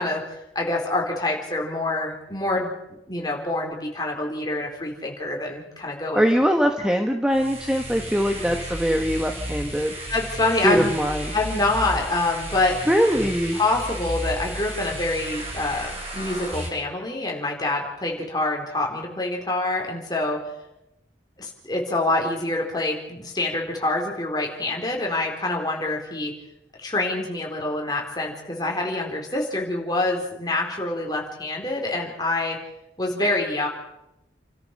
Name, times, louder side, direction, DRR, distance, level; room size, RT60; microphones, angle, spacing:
voice 1, 0.0-6.2 10.1-10.9 11.3-12.8 13.5-20.4 21.4-26.3 26.8-32.6 33.0-33.7, left 2 dB, 20° left, 0 dB, 4.1 m, -26 dB
voice 2, 6.1-9.9 10.6-11.3 12.9-13.6, equal, 5° right, 4 dB, 1.1 m, -22 dB
sound 1, 7.3-16.7, right 1 dB, 30° right, 6.1 m, -33 dB
29.5 x 13.5 x 6.5 m, 0.89 s
head